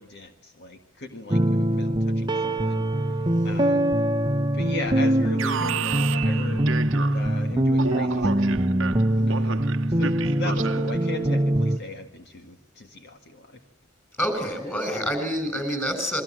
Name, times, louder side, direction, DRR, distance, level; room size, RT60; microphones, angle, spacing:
voice 1, 0.0-3.9 4.5-6.7 7.1-8.7 9.3-13.6, left 2 dB, 55° left, 6 dB, 1.8 m, -38 dB
sound 1, 1.3-11.8, right 1 dB, 20° right, 0.9 m, -23 dB
Alarm, 5.4-7.4 7.8-11.0, right 6 dB, 65° right, 1.0 m, -32 dB
voice 2, 14.2-16.2, equal, 10° left, 8 dB, 7.4 m, -27 dB
28.0 x 23.5 x 7.6 m, 0.80 s
head